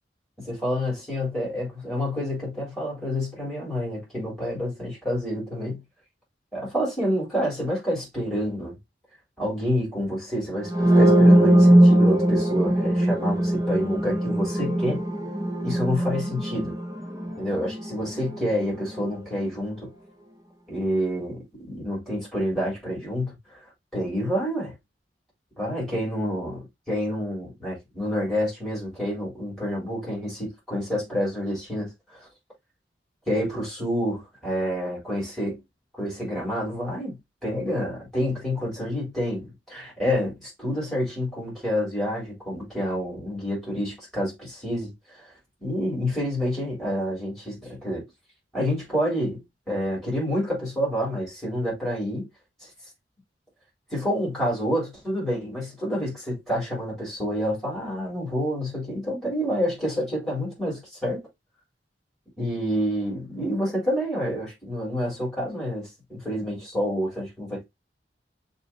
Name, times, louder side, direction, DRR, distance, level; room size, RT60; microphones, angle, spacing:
voice 1, 0.4-5.8 6.5-8.8 9.4-15.0 15.6-16.7 17.4-19.9 20.7-23.3 23.9-24.7 25.6-32.2 33.3-35.5 36.0-45.2 45.6-48.1 48.5-52.3 53.9-61.3 62.4-67.6, equal, ahead, 3.5 m, -28 dB
sound 1, 10.7-18.5, right 1 dB, 20° right, 0.6 m, -20 dB
6.6 x 2.9 x 2.8 m
head